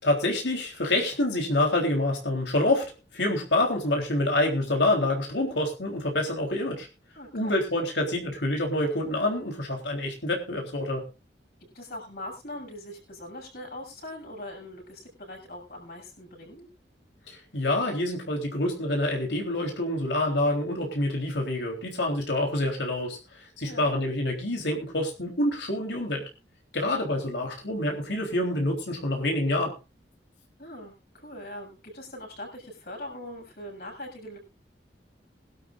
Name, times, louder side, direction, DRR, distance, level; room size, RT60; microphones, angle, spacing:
voice 1, 0.0-6.9 7.3-11.1 17.3-26.2 26.7-29.8, left 1 dB, 80° left, 1 dB, 3.7 m, -27 dB
voice 2, 7.2-7.6 11.7-16.7 23.6-23.9 30.6-34.4, left 1 dB, 60° left, 0 dB, 7.2 m, -41 dB
21.5 x 12.0 x 2.6 m, 0.29 s
head